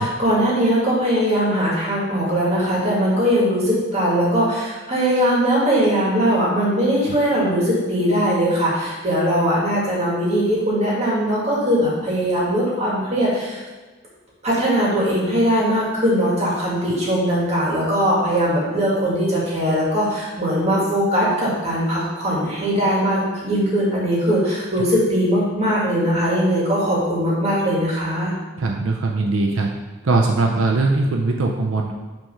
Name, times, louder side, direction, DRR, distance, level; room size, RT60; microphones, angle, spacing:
voice 1, 0.0-13.6 14.4-28.3, equal, 35° right, -6 dB, 2.1 m, -20 dB
voice 2, 28.6-29.7 30.0-31.9, right 3 dB, 90° right, 1 dB, 0.6 m, -20 dB
5.9 x 3.6 x 5.5 m, 1.3 s
head